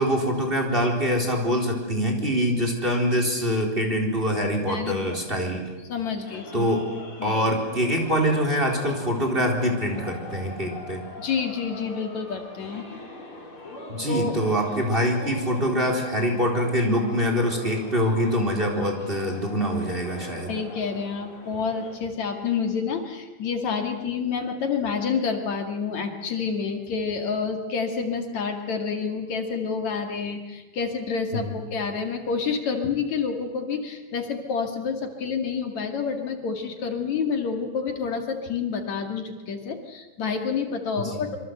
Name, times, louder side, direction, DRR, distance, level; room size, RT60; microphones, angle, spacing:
voice 1, 0.0-5.7 6.5-6.8 7.2-11.0 13.9-20.5 31.3-31.5 41.1-41.3, equal, 15° right, 3 dB, 4.1 m, -24 dB
voice 2, 4.7-5.2 5.9-6.7 7.2-7.3 11.2-12.8 14.1-14.4 20.5-41.4, left 5 dB, 65° left, 4 dB, 3.5 m, -28 dB
sound 1, 6.2-22.0, left 2 dB, 40° left, 5.3 m, -42 dB
26.5 x 24.5 x 8.0 m, 1.2 s
omnidirectional pair, 3.6 m